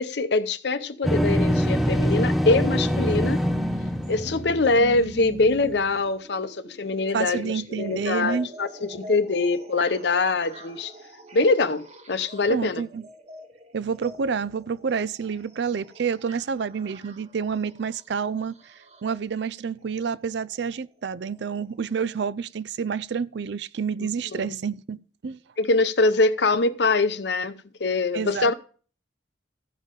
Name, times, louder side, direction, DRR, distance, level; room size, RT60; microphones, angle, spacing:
voice 1, 0.0-3.4 4.1-10.9 11.3-12.8 24.0-24.6 25.6-27.5 27.8-28.5, left 3 dB, 60° left, 0.7 m, -23 dB
sound 1, 1.0-5.0, equal, ahead, 0.6 m, -24 dB
sound 2, 3.3-19.2 20.4-20.5 21.3-21.4 22.0-22.1, equal, 35° right, 1.1 m, -43 dB
voice 2, 7.1-8.5 12.5-13.1 13.7-18.7 19.0-25.0 25.2-25.4 28.1-28.5, right 6 dB, 65° right, 0.4 m, -29 dB
14.0 x 5.5 x 5.1 m
head